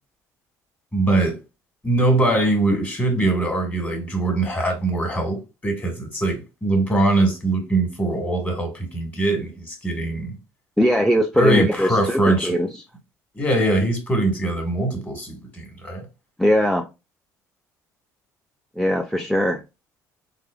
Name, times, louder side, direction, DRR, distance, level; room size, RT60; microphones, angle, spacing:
voice 1, 0.9-1.4 1.8-10.4 11.3-12.5 13.3-16.0, right 2 dB, 20° left, 1.3 m, -22 dB
voice 2, 10.8-12.8 16.4-16.9 18.8-19.6, equal, ahead, 0.3 m, -20 dB
3.4 x 2.1 x 2.2 m
supercardioid pair, 80°, 8 cm